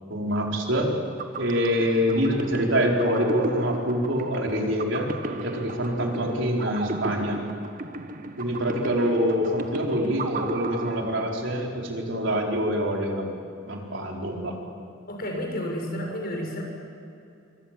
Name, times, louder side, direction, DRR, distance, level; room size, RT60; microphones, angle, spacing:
voice 1, 0.1-1.0 1.4-7.4 8.4-13.3 13.7-14.5, equal, 70° right, 0 dB, 4.6 m, -25 dB
sound 1, 0.9-11.7, right 2 dB, 45° right, 1.4 m, -35 dB
voice 2, 15.1-16.6, equal, 50° left, 1 dB, 6.9 m, -31 dB
26.5 x 25.0 x 7.6 m, 2.6 s
head